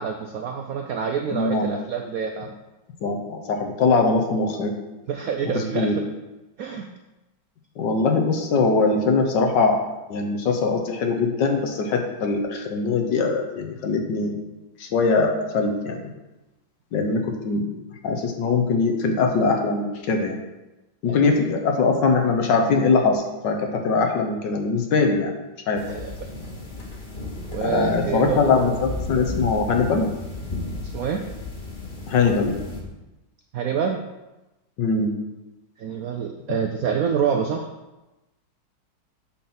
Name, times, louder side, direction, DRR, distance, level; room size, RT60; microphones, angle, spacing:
voice 1, 0.0-2.5 5.1-6.0 6.6-6.9 21.1-21.2 25.9-26.3 27.5-28.8 30.9-31.2 33.5-34.0 35.8-37.7, right 7 dB, 75° right, 4 dB, 0.8 m, -27 dB
voice 2, 1.3-1.7 3.0-4.7 5.5-5.9 7.8-9.8 10.1-14.4 14.8-16.1 16.9-17.7 18.0-20.4 21.0-25.3 25.7-25.8 27.6-30.1 32.1-32.6 34.8-35.1, left 4 dB, 70° left, 3 dB, 1.6 m, -22 dB
sound 1, 25.7-32.8, left 2 dB, 30° left, 1.1 m, -34 dB
8.2 x 3.9 x 5.9 m, 1.0 s
omnidirectional pair, 2.1 m